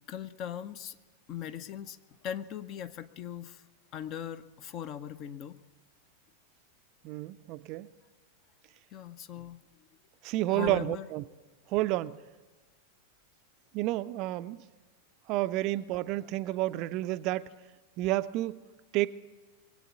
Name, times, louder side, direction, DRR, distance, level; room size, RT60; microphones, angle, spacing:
voice 1, 0.1-1.0 1.3-2.0 2.2-3.6 3.9-5.6 8.9-9.6 10.5-11.1, left 9 dB, 35° left, 0.6 m, -39 dB
voice 2, 7.0-7.9 10.2-11.2 11.7-12.2 13.7-14.6 15.3-17.5 18.0-18.6 18.9-19.1, right 16 dB, 40° right, 0.4 m, -30 dB
21.0 x 8.4 x 8.1 m
figure-of-eight pair, 90°, 0 cm